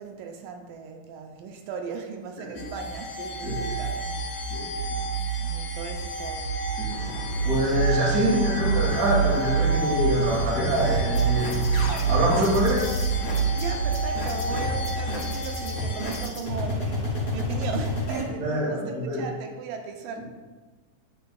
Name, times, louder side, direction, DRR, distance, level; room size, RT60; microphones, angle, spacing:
voice 1, 0.0-4.3 4.9-6.5 7.5-7.6 13.6-20.2, right 6 dB, 85° right, 4 dB, 2.3 m, -37 dB
sound 1, 2.6-16.3, right 4 dB, 60° left, 2.1 m, -27 dB
Vehicle, 6.9-12.6, left 3 dB, 75° left, 2.1 m, -39 dB
voice 2, 7.4-11.6 12.1-12.9 18.3-19.2 20.2-20.3, equal, 45° right, -3 dB, 1.4 m, -25 dB
sound 2, 10.9-18.2, left 1 dB, 40° left, 1.8 m, -31 dB
9.2 x 6.5 x 2.3 m, 1.3 s
omnidirectional pair, 4.0 m